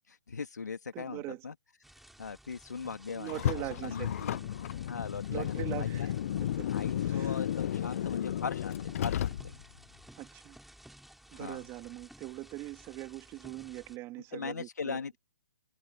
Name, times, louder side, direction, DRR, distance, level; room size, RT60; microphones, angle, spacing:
voice 1, 0.1-1.5 2.2-4.3 4.9-6.1 6.7-9.5 11.3-11.6 14.3-15.2, left 5 dB, 75° left, 2.6 m, -39 dB
voice 2, 0.9-1.4 3.1-4.3 5.3-6.1 6.6-7.4 8.0-8.1 10.2-10.6 11.3-15.0, right 19 dB, 25° right, 2.8 m, -42 dB
sound 1, 1.8-14.0, right 1 dB, ahead, 4.1 m, -55 dB
Car, 3.3-9.8, left 11 dB, 50° left, 0.6 m, -33 dB
figure-of-eight pair, 125°, 9 cm